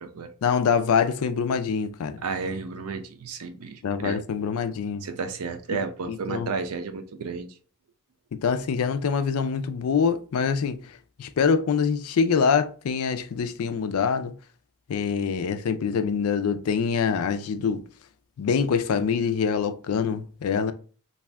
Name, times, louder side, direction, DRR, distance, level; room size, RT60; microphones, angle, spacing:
voice 1, 0.4-2.2 3.8-5.0 6.1-6.5 8.3-14.4 14.9-17.8 18.4-20.7, left 6 dB, 75° left, 0.4 m, -25 dB
voice 2, 2.2-4.2 5.0-7.5, right 4 dB, 85° right, 0.5 m, -32 dB
2.6 x 2.4 x 3.2 m
head